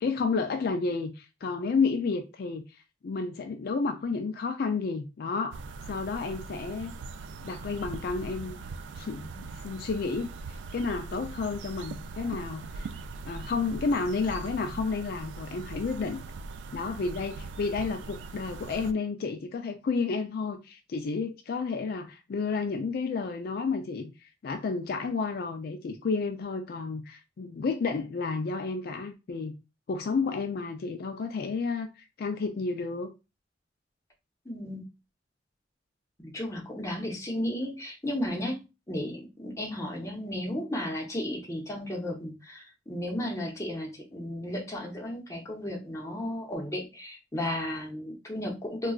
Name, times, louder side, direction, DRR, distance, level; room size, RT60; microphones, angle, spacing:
voice 1, 0.0-2.7 3.0-5.6 5.9-6.9 7.4-8.6 9.0-12.9 13.2-16.2 16.7-29.5 29.9-33.1, left 4 dB, 55° left, 0.4 m, -31 dB
sound 1, 5.5-18.9, right 4 dB, 75° right, 0.3 m, -41 dB
voice 2, 34.4-34.8 36.2-38.6 38.9-48.9, left 1 dB, 15° left, 0.8 m, -34 dB
3.8 x 2.3 x 2.3 m
head